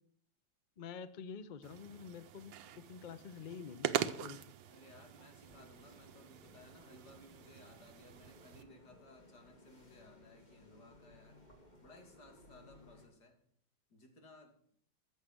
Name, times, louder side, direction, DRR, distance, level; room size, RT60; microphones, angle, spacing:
voice 1, 0.8-4.4, left 6 dB, 85° left, 13 dB, 0.4 m, -48 dB
sound 1, 1.6-8.6, right 10 dB, 85° right, 1.5 m, -43 dB
voice 2, 4.7-11.4 11.8-13.4 13.9-14.5, left 2 dB, 60° left, 3 dB, 3.0 m, -60 dB
sound 2, 5.4-13.1, left 1 dB, 25° left, 2.7 m, -62 dB
14.0 x 7.2 x 7.7 m, 0.63 s
omnidirectional pair, 2.0 m